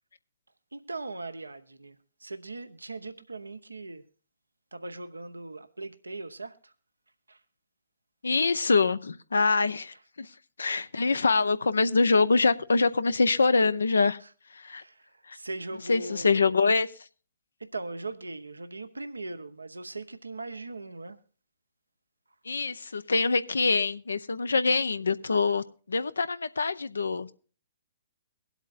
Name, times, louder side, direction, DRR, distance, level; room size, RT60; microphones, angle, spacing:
voice 1, 0.7-4.0 4.7-6.7 7.3-7.4 14.7-16.6 17.6-21.2, right 2 dB, 85° right, 0.8 m, -39 dB
voice 2, 8.2-10.3 10.6-14.2 14.5-14.8 15.3-15.4 15.9-16.9 22.4-27.3, left 4 dB, 75° left, 0.6 m, -25 dB
23.0 x 8.2 x 2.5 m
figure-of-eight pair, 120°, 0 cm